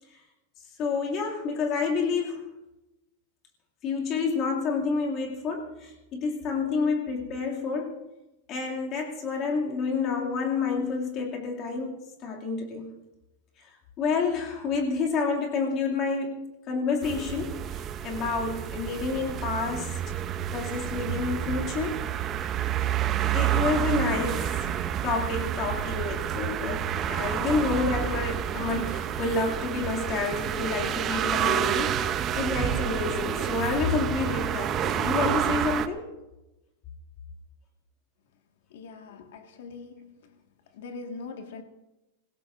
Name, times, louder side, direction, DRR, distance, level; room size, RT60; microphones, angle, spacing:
voice 1, 0.8-2.5 3.8-8.0 8.5-12.9 14.0-19.9 20.5-22.1 23.3-36.1, left 4 dB, 30° left, 2.3 m, -29 dB
sound 1, 17.0-35.9, right 10 dB, 25° right, 0.6 m, -29 dB
voice 2, 38.7-40.3 40.7-41.6, left 4 dB, 70° left, 1.7 m, -42 dB
27.0 x 16.5 x 2.5 m
supercardioid pair, 170°, 0 cm